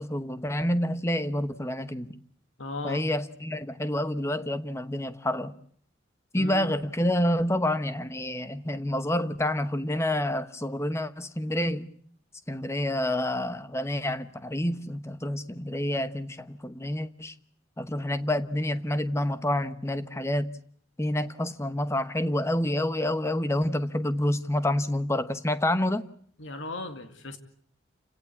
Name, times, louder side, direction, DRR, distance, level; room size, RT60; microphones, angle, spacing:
voice 1, 0.0-2.2 2.8-5.6 6.3-11.9 12.5-17.3 17.8-20.5 21.0-26.1, left 1 dB, 15° left, 1.0 m, -28 dB
voice 2, 2.6-3.0 6.3-6.7 26.4-27.4, left 2 dB, 90° left, 2.2 m, -36 dB
29.0 x 17.5 x 8.4 m
head